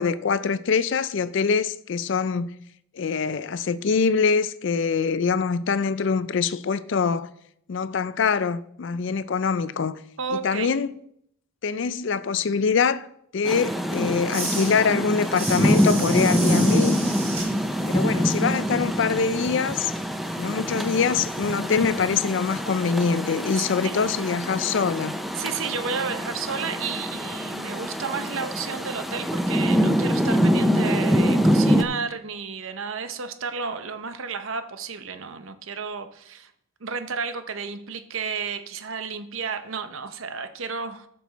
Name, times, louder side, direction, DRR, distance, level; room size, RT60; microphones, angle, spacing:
voice 1, 0.0-2.6 2.9-7.3 7.7-10.0 10.3-10.9 11.6-13.1 13.3-17.0 17.9-19.9 20.4-25.2, left 5 dB, 55° left, 0.4 m, -24 dB
voice 2, 10.2-10.7 17.8-18.2 23.8-24.1 25.4-36.5 36.8-41.1, right 5 dB, 70° right, 0.8 m, -32 dB
Rain, 13.4-31.8, equal, ahead, 0.4 m, -25 dB
sound 1, 14.3-19.8 20.1-25.0, right 3 dB, 30° right, 3.9 m, -36 dB
13.0 x 6.2 x 4.1 m
head